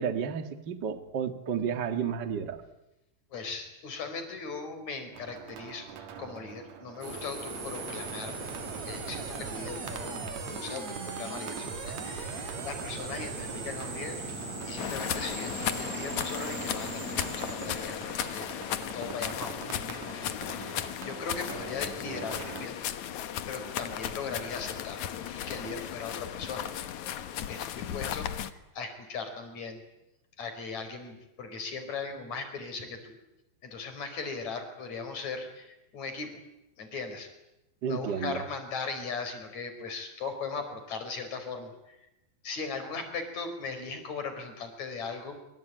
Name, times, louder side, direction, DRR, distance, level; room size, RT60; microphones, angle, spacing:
voice 1, 0.0-2.6 37.8-38.4, right 7 dB, 75° right, 8 dB, 1.0 m, -32 dB
voice 2, 3.3-5.9 6.2-8.5 8.8-14.2 14.7-18.5 18.9-22.8 23.5-26.7 27.5-28.3 28.7-29.8 30.4-33.2 33.6-36.4 36.8-37.3 37.9-41.7 42.4-45.4, left 4 dB, 40° left, 7 dB, 5.3 m, -39 dB
sound 1, 5.1-22.7, right 8 dB, 55° right, 2.1 m, -45 dB
sound 2, 7.0-19.0, right 3 dB, 40° right, 4.5 m, -39 dB
sound 3, 14.8-28.5, left 10 dB, 85° left, 1.6 m, -36 dB
25.5 x 25.0 x 9.2 m, 0.90 s
omnidirectional pair, 5.3 m